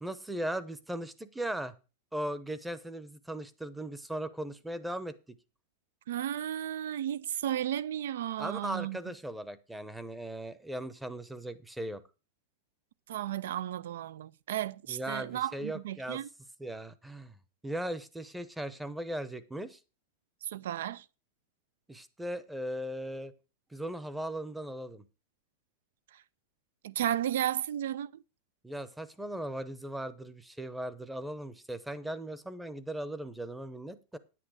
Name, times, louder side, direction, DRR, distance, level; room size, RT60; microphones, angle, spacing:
voice 1, 0.0-1.7 2.1-5.4 8.4-12.0 14.9-16.2 16.6-17.4 17.6-19.8 21.9-23.3 23.7-25.0 28.6-34.2, right 1 dB, 5° right, 0.8 m, -38 dB
voice 2, 6.1-9.1 13.1-16.3 20.4-21.0 26.1-26.2 26.8-28.2, right 11 dB, 75° right, 0.6 m, -34 dB
9.8 x 8.5 x 4.8 m
supercardioid pair, 150°, 0 cm